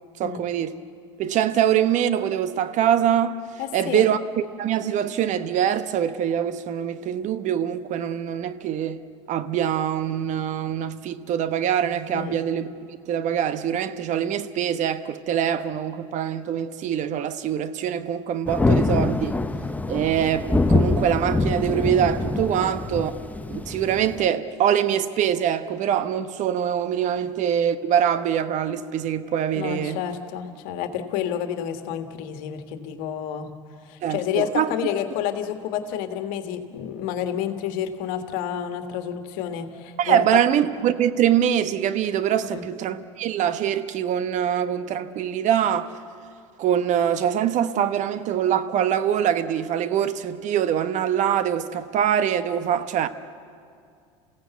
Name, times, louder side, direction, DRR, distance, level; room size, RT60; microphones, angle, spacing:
voice 1, 0.2-0.8 1.2-3.4 3.7-19.4 19.9-23.1 23.5-30.0 34.0-34.7 40.0-45.9 46.6-53.1, right 9 dB, 50° right, 1.1 m, -24 dB
voice 2, 3.6-4.1 12.1-12.4 22.5-22.7 27.2-27.3 29.5-33.5 33.8-40.4 42.4-42.6, left 9 dB, 65° left, 1.7 m, -30 dB
Thunder, 18.5-24.3, left 2 dB, 10° left, 0.9 m, -24 dB
28.0 x 16.0 x 8.3 m
hypercardioid pair, 80°, 16 cm